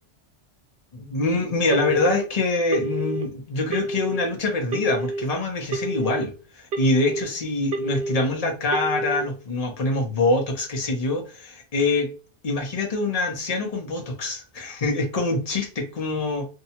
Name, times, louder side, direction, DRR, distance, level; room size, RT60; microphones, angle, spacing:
voice 1, 0.9-12.1 12.4-16.5, left 2 dB, 40° left, 0.7 m, -25 dB
Telephone, 1.7-2.2 2.7-3.2 3.7-4.2 4.7-5.2 5.7-6.2 6.7-7.2 7.7-8.2 8.7-9.2, right 2 dB, 65° right, 0.8 m, -28 dB
2.7 x 2.2 x 2.8 m
omnidirectional pair, 1.2 m